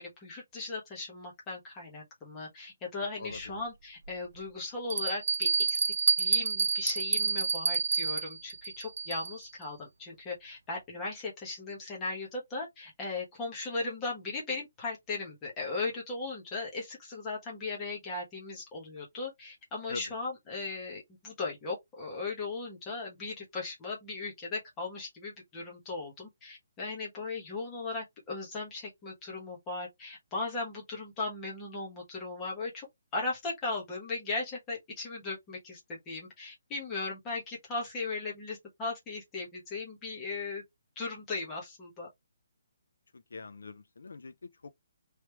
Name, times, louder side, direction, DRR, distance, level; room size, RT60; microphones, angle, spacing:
voice 1, 0.0-5.8 6.2-32.9 33.1-40.6 41.0-42.1, left 3 dB, 10° left, 1.1 m, -37 dB
voice 2, 3.2-3.6 19.9-20.1 43.1-44.7, left 4 dB, 80° left, 0.5 m, -44 dB
Bell, 3.3-3.4 4.1-4.2 4.9-9.5, right 5 dB, 80° right, 0.4 m, -29 dB
3.2 x 3.0 x 3.2 m
hypercardioid pair, 180°, 0 cm